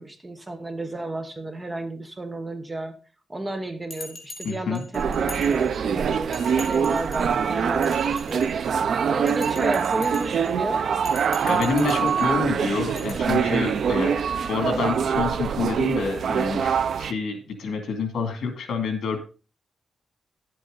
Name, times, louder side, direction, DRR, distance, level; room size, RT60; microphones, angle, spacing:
voice 1, 0.0-2.9 3.3-8.5 9.1-10.8, right 2 dB, 15° right, 7 dB, 1.0 m, -32 dB
Bell, 3.9-6.0 6.3-7.3 7.7-8.8 9.3-10.5 11.0-12.3 13.0-13.1, left 2 dB, 35° left, 2.3 m, -42 dB
voice 2, 4.4-4.8 11.4-14.1 14.5-19.2, left 4 dB, 75° left, 6 dB, 2.3 m, -27 dB
sound 1, 4.9-17.1, right 7 dB, 60° right, 0.5 m, -24 dB
11.0 x 7.7 x 3.9 m, 0.35 s
wide cardioid pair, 170°, 0 cm